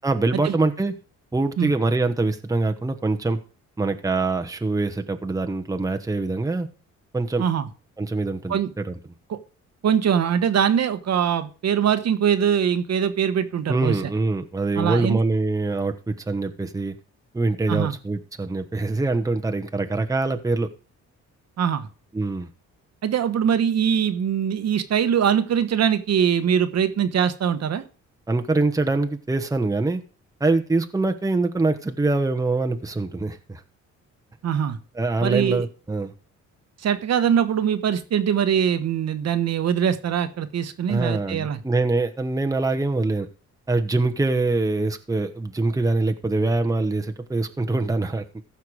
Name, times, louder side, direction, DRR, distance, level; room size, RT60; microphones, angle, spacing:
voice 1, 0.0-0.9 1.3-3.4 3.8-6.7 7.1-7.4 8.0-9.0 13.7-16.9 17.3-20.7 22.1-22.5 28.3-30.0 30.4-33.6 34.9-36.1 40.9-43.3 43.7-48.4, right 3 dB, 10° right, 5 dB, 1.1 m, -24 dB
voice 2, 9.8-14.0 14.8-15.2 17.7-17.9 21.6-21.9 23.0-27.8 34.4-34.8 35.2-35.6 36.8-41.6, right 8 dB, 60° right, 10 dB, 1.2 m, -22 dB
14.5 x 5.9 x 4.8 m, 0.37 s
cardioid pair, 90°, 30 cm